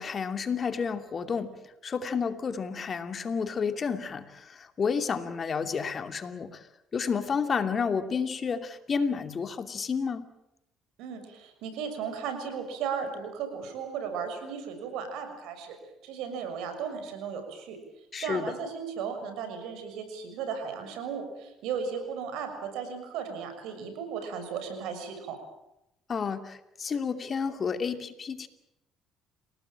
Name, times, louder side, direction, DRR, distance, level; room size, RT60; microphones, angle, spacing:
voice 1, 0.0-1.5 1.8-6.6 6.9-10.2 18.1-18.5 26.1-28.5, left 5 dB, 45° left, 8 dB, 2.6 m, -30 dB
voice 2, 11.0-15.8 16.0-17.8 18.2-25.4, right 6 dB, 80° right, 7 dB, 6.5 m, -35 dB
29.0 x 18.0 x 9.0 m, 0.86 s
supercardioid pair, 70°, 0 cm